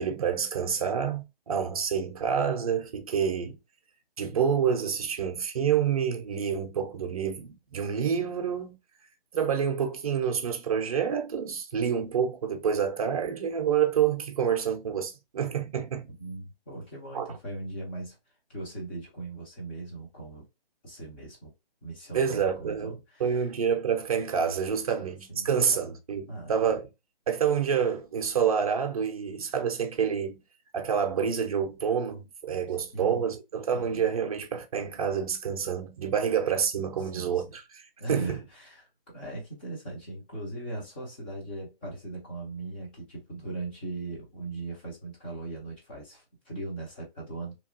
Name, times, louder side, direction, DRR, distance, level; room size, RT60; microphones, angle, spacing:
voice 1, 0.0-3.6 4.2-8.8 9.3-16.1 17.1-17.3 22.1-26.9 27.3-30.4 30.7-38.4, right 7 dB, 40° right, 0.5 m, -28 dB
voice 2, 16.1-18.2 18.5-20.4 20.8-21.5 21.8-23.4 25.3-25.9 26.3-26.5 32.9-33.2 33.7-34.1 37.1-37.4 38.0-47.6, right 2 dB, 10° left, 0.5 m, -39 dB
2.9 x 2.4 x 2.5 m
figure-of-eight pair, 150°, 30 cm